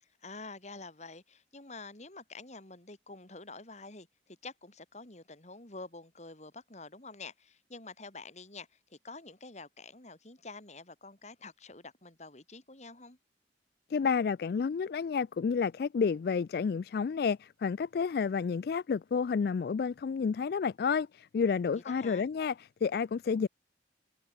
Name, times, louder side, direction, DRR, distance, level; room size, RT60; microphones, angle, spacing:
voice 1, 0.0-13.2 21.7-22.3, left 3 dB, 40° left, 2.6 m, -48 dB
voice 2, 13.9-22.5 22.8-23.5, left 6 dB, 60° left, 0.3 m, -30 dB
head